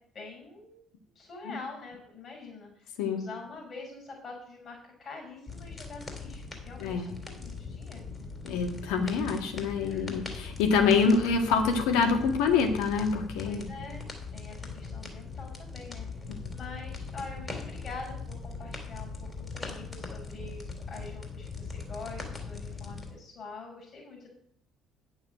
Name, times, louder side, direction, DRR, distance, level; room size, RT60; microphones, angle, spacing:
voice 1, 0.1-0.8 1.2-8.2 9.8-10.2 13.4-14.1 14.3-16.1 16.5-19.3 19.5-24.3, left 3 dB, 45° left, -1 dB, 5.4 m, -45 dB
sound 1, 5.5-23.1, left 4 dB, 30° left, 3.3 m, -40 dB
voice 2, 8.4-13.7, left 5 dB, 75° left, 4 dB, 1.8 m, -26 dB
9.4 x 7.1 x 6.5 m, 0.64 s
hypercardioid pair, 55°, 0 cm